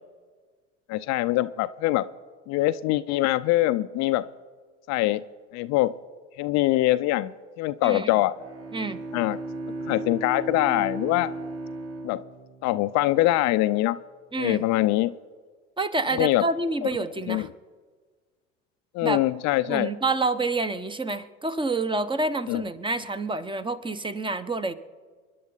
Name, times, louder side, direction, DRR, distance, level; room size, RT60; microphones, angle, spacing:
voice 1, 0.9-2.1 2.5-4.3 4.9-5.2 5.5-5.9 6.4-8.4 9.1-9.4 9.9-11.3 12.0-12.2 12.6-14.0 14.4-15.1 16.1-16.5 16.8-16.9 17.3-17.5 18.9-19.9 22.5-22.6, left 16 dB, 50° left, 13 dB, 0.6 m, -23 dB
voice 2, 7.8-8.2 8.7-9.0 14.3-14.6 15.8-17.5 19.0-19.2 19.7-24.7, right 3 dB, 15° right, 12 dB, 1.0 m, -28 dB
Bowed string instrument, 8.3-13.5, right 2 dB, 40° right, 2.9 m, -36 dB
28.5 x 11.0 x 4.0 m, 1.5 s
hypercardioid pair, 70°, 34 cm